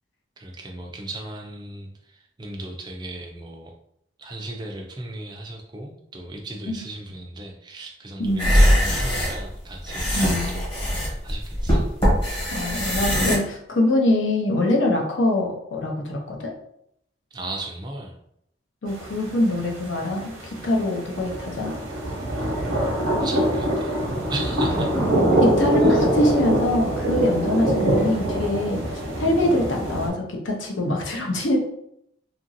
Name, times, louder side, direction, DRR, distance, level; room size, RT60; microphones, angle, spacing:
voice 1, 0.4-3.7 4.2-11.9 17.3-18.2 23.2-24.0 24.3-24.9 25.8-26.0, right 2 dB, 20° right, 2 dB, 0.4 m, -36 dB
voice 2, 8.2-8.6 10.2-10.5 12.5-16.5 18.8-21.7 25.0-25.1 25.4-31.6, left 1 dB, 75° left, 0 dB, 0.7 m, -24 dB
sound 1, 8.3-13.4, equal, 30° left, 1.1 m, -21 dB
sound 2, 18.9-30.1, right 1 dB, 90° right, 0.8 m, -23 dB
2.8 x 2.5 x 2.6 m, 0.74 s
head